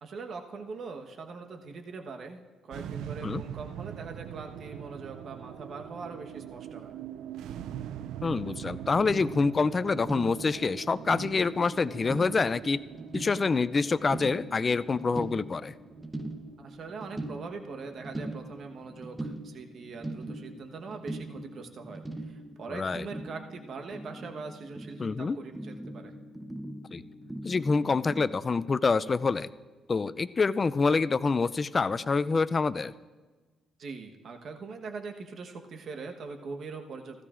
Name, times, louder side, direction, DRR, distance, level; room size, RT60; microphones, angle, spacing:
voice 1, 0.0-6.9 16.6-26.1 33.8-37.2, right 4 dB, 60° right, 4 dB, 1.1 m, -42 dB
sound 1, 2.7-19.1, right 10 dB, 85° right, 0.4 m, -43 dB
voice 2, 8.2-12.8 13.1-15.7 22.7-23.1 25.0-25.4 26.9-27.0 27.4-29.5 29.9-32.9, left 4 dB, 35° left, 16 dB, 0.3 m, -26 dB
sound 2, 8.8-28.3, right 1 dB, 10° right, 0.9 m, -41 dB
16.5 x 14.0 x 2.5 m, 1.3 s
cardioid pair, 90°, 0 cm